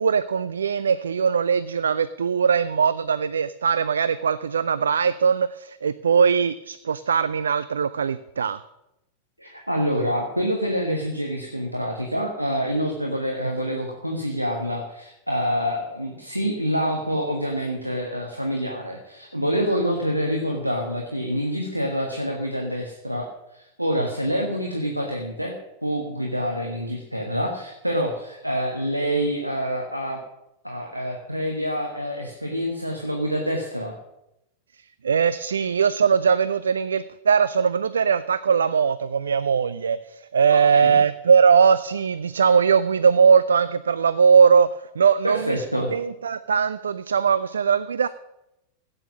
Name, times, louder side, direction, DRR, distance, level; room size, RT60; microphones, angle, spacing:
voice 1, 0.0-8.6 35.0-44.7 45.0-45.6 45.9-48.1, right 6 dB, 70° right, 15 dB, 0.4 m, -20 dB
voice 2, 9.4-23.3 23.5-25.5 25.8-30.2 30.6-33.9 40.5-40.9 45.2-45.9, equal, 90° right, 1 dB, 1.5 m, -26 dB
15.5 x 8.8 x 6.2 m, 0.88 s
figure-of-eight pair, 90°, 0 cm